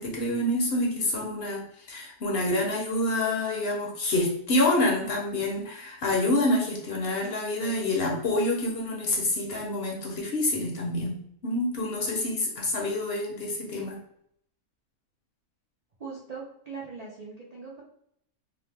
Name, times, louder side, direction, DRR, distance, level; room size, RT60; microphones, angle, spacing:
voice 1, 0.0-14.0, left 1 dB, 55° left, -1 dB, 0.7 m, -27 dB
voice 2, 16.0-17.8, right 5 dB, 90° right, -4 dB, 0.3 m, -40 dB
2.8 x 2.1 x 3.2 m, 0.70 s
omnidirectional pair, 1.5 m